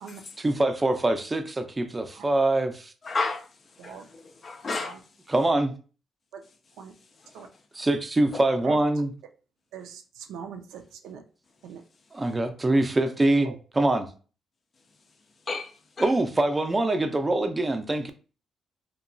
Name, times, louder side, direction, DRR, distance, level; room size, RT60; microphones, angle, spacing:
voice 1, 0.4-2.9 5.3-5.7 7.7-9.1 12.1-14.1 16.0-18.1, right 2 dB, 20° right, 0.4 m, -24 dB
voice 2, 3.0-3.5 3.8-5.0 7.4-7.5 8.3-8.4 15.5-16.1, left 3 dB, 40° left, 0.4 m, -32 dB
voice 3, 10.3-11.2 11.6-11.8 12.3-12.4 13.5-13.6, right 7 dB, 85° right, 0.4 m, -40 dB
2.9 x 2.2 x 2.5 m
cardioid pair, 90°, 0 cm